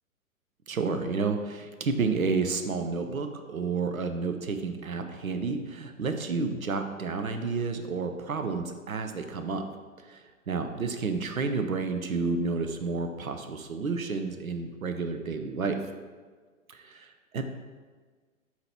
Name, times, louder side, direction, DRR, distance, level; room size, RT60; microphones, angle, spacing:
voice 1, 0.7-9.7 10.1-15.8 16.7-17.4, right 4 dB, 70° right, 6 dB, 0.7 m, -30 dB
7.5 x 2.9 x 4.3 m, 1.4 s
figure-of-eight pair, 120°, 43 cm